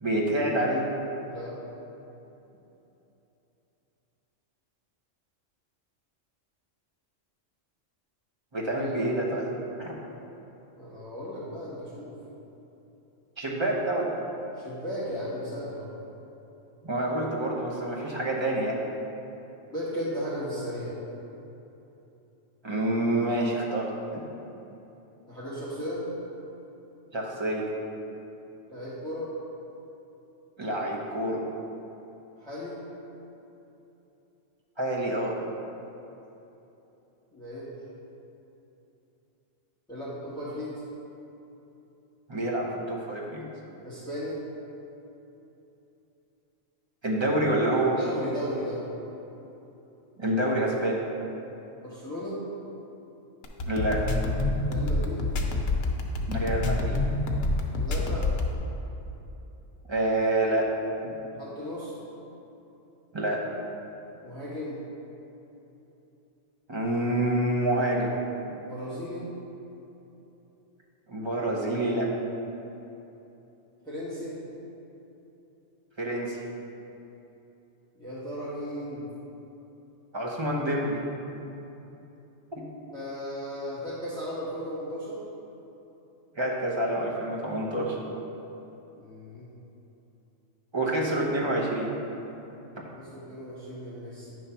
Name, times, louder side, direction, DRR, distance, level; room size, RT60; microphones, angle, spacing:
voice 1, 0.0-0.8 8.5-9.5 9.8-9.9 13.4-14.1 16.8-18.8 22.6-23.9 27.1-27.7 30.6-31.4 34.8-35.4 42.3-43.4 47.0-48.0 50.2-51.0 53.6-54.0 56.3-57.0 59.9-60.7 63.1-63.4 66.7-68.1 71.1-72.1 76.0-76.4 80.1-81.0 82.6-82.7 86.3-88.0 90.7-91.9, right 1 dB, 25° right, -3 dB, 0.9 m, -27 dB
voice 2, 1.2-1.5 8.8-9.1 10.7-12.2 14.6-15.9 19.7-21.0 25.3-26.1 28.7-29.3 32.4-32.8 37.3-37.8 39.9-40.8 43.8-44.4 48.0-48.9 51.8-52.4 54.7-55.3 57.8-58.3 61.4-62.0 64.2-64.8 68.7-69.2 73.8-74.4 78.0-79.1 82.9-85.2 88.9-89.5 93.0-94.4, equal, 5° left, -10 dB, 1.3 m, -36 dB
sound 1, 53.4-58.5, left 2 dB, 85° left, 1.1 m, -27 dB
9.3 x 3.2 x 5.6 m, 3.0 s
omnidirectional pair, 1.3 m